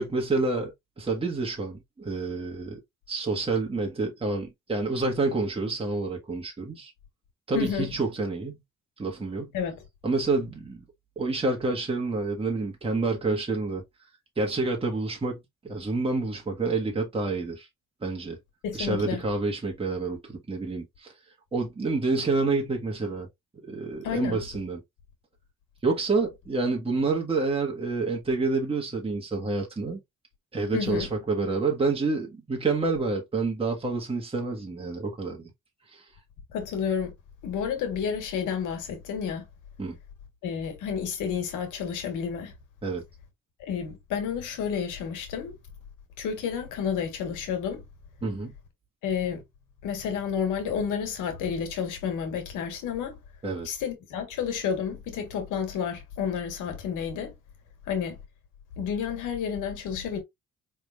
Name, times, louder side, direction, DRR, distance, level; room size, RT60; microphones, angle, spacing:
voice 1, 0.0-2.8 3.1-6.9 7.5-8.6 9.0-9.6 10.0-10.8 11.2-13.8 14.4-17.7 18.0-18.4 18.7-21.1 21.5-23.3 23.6-24.8 25.8-30.0 30.5-35.4 35.9-36.0 39.8-40.0 42.8-43.0 48.2-48.5 53.4-53.7, right 3 dB, 20° right, 1.5 m, -28 dB
voice 2, 7.5-7.9 9.5-9.8 18.6-19.2 24.0-24.4 30.7-31.1 36.5-37.1 37.4-39.4 40.4-42.5 43.6-45.5 46.2-47.8 49.0-49.4 49.8-53.2 53.6-57.3 57.9-58.2 58.8-60.2, left 7 dB, 90° left, 1.4 m, -30 dB
5.0 x 3.5 x 2.4 m
cardioid pair, 90°, 30 cm